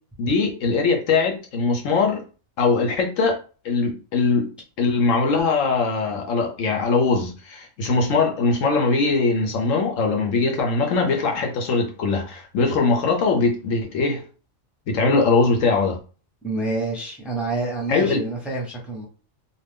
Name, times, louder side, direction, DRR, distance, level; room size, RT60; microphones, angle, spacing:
voice 1, 0.2-2.2 2.6-3.4 3.6-4.5 4.8-14.2 14.9-16.0 17.9-18.2, left 4 dB, 75° left, 1.1 m, -21 dB
voice 2, 16.4-19.0, right 2 dB, ahead, 0.7 m, -27 dB
2.7 x 2.4 x 3.4 m
omnidirectional pair, 1.4 m